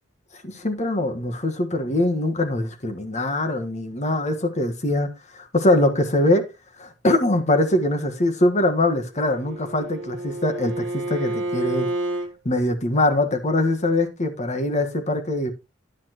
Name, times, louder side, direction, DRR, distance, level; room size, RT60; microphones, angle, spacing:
voice 1, 0.4-5.1 5.3-6.4 6.8-11.9 12.4-15.5, left 1 dB, 40° left, 1.5 m, -22 dB
Bowed string instrument, 9.1-12.3, right 1 dB, 85° right, 1.6 m, -29 dB
10.5 x 8.6 x 3.0 m
head